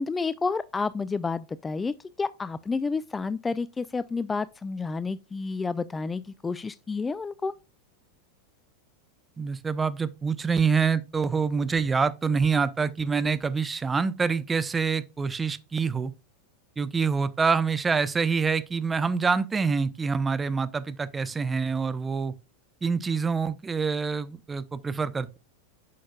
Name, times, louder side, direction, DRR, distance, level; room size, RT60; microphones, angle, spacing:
voice 1, 0.0-7.5, left 4 dB, 15° left, 0.3 m, -30 dB
voice 2, 9.4-16.1 16.8-22.3 22.8-25.4, right 5 dB, 15° right, 0.7 m, -26 dB
9.1 x 6.3 x 2.3 m
figure-of-eight pair, 85°, 0 cm